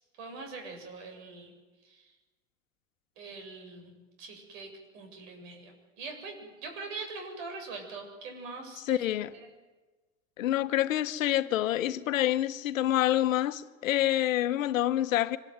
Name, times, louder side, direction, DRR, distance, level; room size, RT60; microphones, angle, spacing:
voice 1, 0.2-1.5 1.8-2.1 3.2-9.0 9.3-9.5, right 3 dB, 70° right, 7.8 m, -43 dB
voice 2, 8.8-9.3 10.4-15.4, left 13 dB, 75° left, 1.2 m, -27 dB
24.5 x 22.0 x 9.5 m
hypercardioid pair, 70°, 39 cm